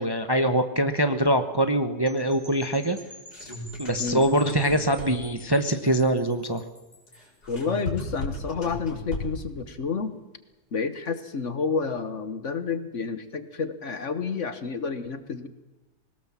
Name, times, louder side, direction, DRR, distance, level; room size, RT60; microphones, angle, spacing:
voice 1, 0.0-3.0 3.8-6.6, right 1 dB, 20° right, 8 dB, 0.9 m, -23 dB
sound 1, 2.1-7.4, equal, 15° left, 4.6 m, -48 dB
sound 2, 3.0-5.4 7.1-9.5, left 1 dB, 70° left, 5.0 m, -36 dB
voice 2, 7.5-10.1 10.7-15.5, left 5 dB, 50° left, 11 dB, 1.4 m, -30 dB
21.0 x 19.0 x 7.4 m, 1.1 s
omnidirectional pair, 1.7 m